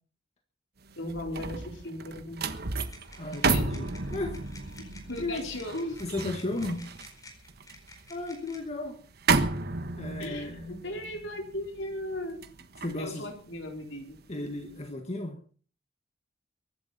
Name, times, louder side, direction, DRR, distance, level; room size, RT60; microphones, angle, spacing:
sound 1, 0.9-14.2 14.6-14.9, right 4 dB, 55° right, 1.3 m, -33 dB
voice 1, 1.0-2.6 3.4-3.6 4.8-6.3 10.2-12.4 13.0-14.2, left 1 dB, 70° left, 2 dB, 4.0 m, -37 dB
sound 2, 2.8-8.6, left 2 dB, 20° left, 4.5 m, -52 dB
voice 2, 3.2-4.4 5.2-5.5 6.0-7.0 8.1-9.0 10.0-10.8 12.8-13.3 14.3-15.4, left 2 dB, 35° left, 4 dB, 1.7 m, -35 dB
23.5 x 11.5 x 4.2 m, 0.42 s
head